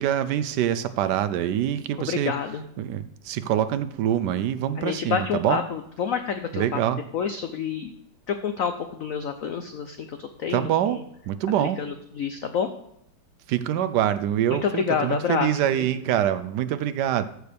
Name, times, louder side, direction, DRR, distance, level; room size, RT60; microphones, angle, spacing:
voice 1, 0.0-2.3 2.8-5.6 6.5-7.0 10.5-11.0 11.3-11.8 13.5-17.3, right 11 dB, 75° right, 12 dB, 1.0 m, -25 dB
voice 2, 2.0-2.6 4.8-6.8 7.1-7.9 8.3-11.0 11.6-12.7 13.7-13.8 14.6-15.9, left 7 dB, 85° left, 8 dB, 0.7 m, -28 dB
13.5 x 6.5 x 3.4 m, 0.76 s
omnidirectional pair, 2.2 m